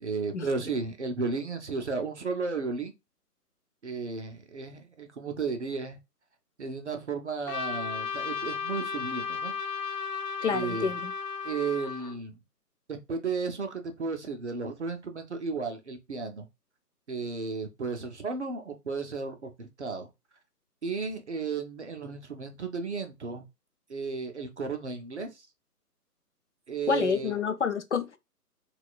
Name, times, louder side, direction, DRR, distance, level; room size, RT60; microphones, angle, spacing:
voice 1, 0.0-2.9 3.8-6.0 6.6-9.5 10.5-10.9 11.4-12.4 12.9-16.5 17.1-20.1 20.8-23.4 23.9-25.5 26.7-27.4, right 4 dB, 45° right, 0.6 m, -34 dB
Trumpet, 7.5-12.2, left 5 dB, 75° left, 0.8 m, -34 dB
voice 2, 10.4-11.1 26.9-28.2, left 6 dB, 50° left, 0.5 m, -28 dB
4.1 x 2.3 x 2.3 m
figure-of-eight pair, 150°, 48 cm